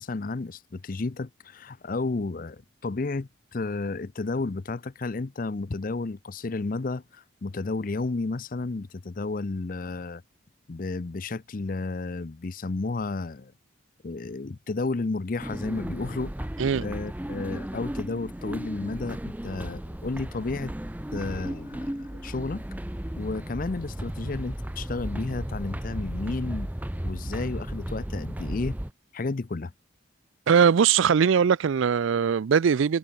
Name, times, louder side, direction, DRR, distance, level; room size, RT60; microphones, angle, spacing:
voice 1, 0.0-10.2 10.7-13.5 14.0-16.3 16.8-20.7 21.1-22.6 23.2-26.7 27.0-28.8 29.1-29.7, left 3 dB, 40° left, 0.5 m, -32 dB
sound 1, 15.4-28.9, equal, 10° right, 0.6 m, -35 dB
voice 2, 30.5-33.0, right 7 dB, 70° right, 0.4 m, -21 dB
head